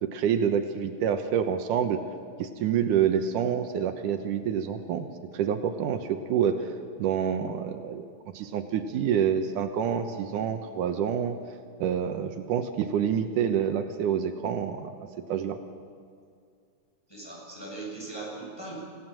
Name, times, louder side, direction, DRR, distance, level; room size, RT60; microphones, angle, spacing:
voice 1, 0.0-2.0 2.4-5.1 5.3-6.6 7.0-8.0 8.3-11.4 11.8-14.9 15.3-15.6, right 8 dB, 85° right, 7 dB, 2.6 m, -27 dB
voice 2, 17.1-18.8, right 2 dB, 5° left, -4 dB, 7.8 m, -39 dB
27.0 x 16.0 x 7.6 m, 2.3 s
omnidirectional pair, 3.6 m